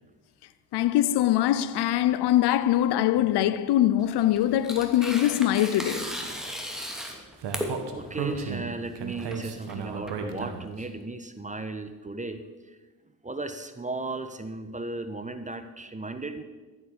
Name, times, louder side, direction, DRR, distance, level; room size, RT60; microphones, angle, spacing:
voice 1, 0.7-6.1, left 12 dB, 65° left, 0.8 m, -23 dB
Tearing, 4.0-10.8, equal, ahead, 2.6 m, -37 dB
Speech, 7.4-10.8, right 6 dB, 65° right, 1.9 m, -34 dB
voice 2, 7.9-12.4 12.7-12.8 13.2-16.4, right 2 dB, 15° right, 1.2 m, -36 dB
13.5 x 8.2 x 6.9 m
supercardioid pair, 65°, 44 cm